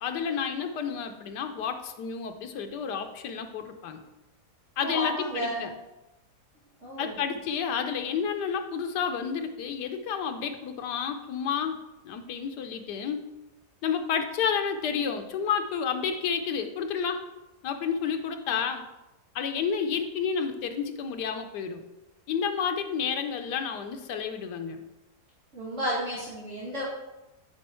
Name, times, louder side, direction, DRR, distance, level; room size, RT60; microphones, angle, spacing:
voice 1, 0.0-4.0 4.8-5.7 7.0-11.8 12.0-13.2 13.8-17.2 17.6-18.8 19.3-21.8 22.3-24.8, left 7 dB, 85° left, 6 dB, 1.4 m, -30 dB
voice 2, 4.8-5.7 6.8-7.2 25.5-26.8, equal, 45° right, -8 dB, 2.1 m, -32 dB
9.7 x 4.5 x 4.4 m, 0.99 s
omnidirectional pair, 1.7 m